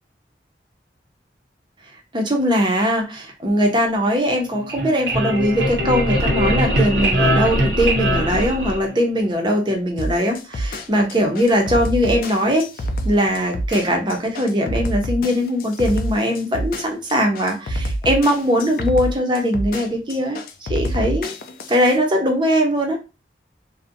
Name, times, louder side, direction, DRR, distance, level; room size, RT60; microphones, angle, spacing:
voice 1, 2.1-12.6 13.0-20.4 20.7-21.3 21.7-23.0, equal, 25° right, 2 dB, 0.5 m, -20 dB
sound 1, 4.5-9.2, equal, 90° right, 0.8 m, -21 dB
sound 2, 10.0-22.0, equal, 55° left, 0.3 m, -27 dB
2.5 x 2.0 x 2.5 m, 0.30 s
head